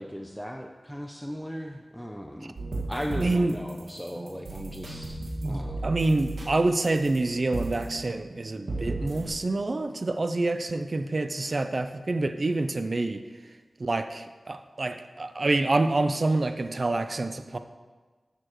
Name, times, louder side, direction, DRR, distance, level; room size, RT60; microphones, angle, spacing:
voice 1, 0.0-2.5 2.9-5.2 5.4-5.9, equal, ahead, 2 dB, 0.5 m, -37 dB
sound 1, 2.5-9.3, right 2 dB, 80° right, 1.8 m, -36 dB
voice 2, 3.1-3.6 5.4-13.2 13.8-17.6, right 2 dB, 50° right, 9 dB, 0.5 m, -27 dB
13.0 x 6.8 x 3.0 m, 1.4 s
wide cardioid pair, 80°, 0 cm